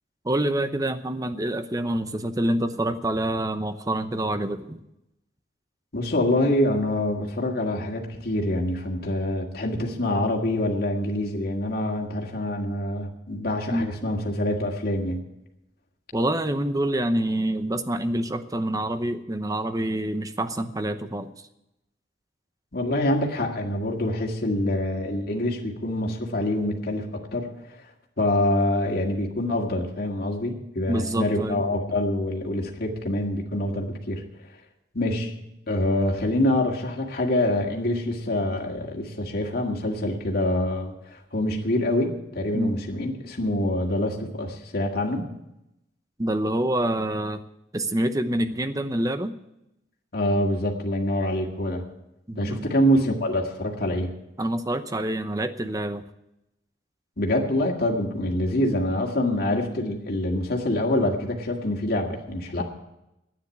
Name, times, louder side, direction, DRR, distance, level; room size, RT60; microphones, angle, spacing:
voice 1, 0.2-4.8 13.7-13.9 16.1-21.3 30.9-31.6 42.5-42.8 46.2-47.4 47.7-49.3 52.3-52.7 54.4-56.0, right 1 dB, 20° right, 10 dB, 0.8 m, -26 dB
voice 2, 5.9-15.2 22.7-27.5 28.2-34.2 34.9-35.3 35.7-45.3 50.1-51.8 52.4-54.1 57.2-62.6, left 1 dB, 55° left, 0 dB, 1.9 m, -25 dB
10.0 x 9.4 x 9.7 m, 0.88 s
head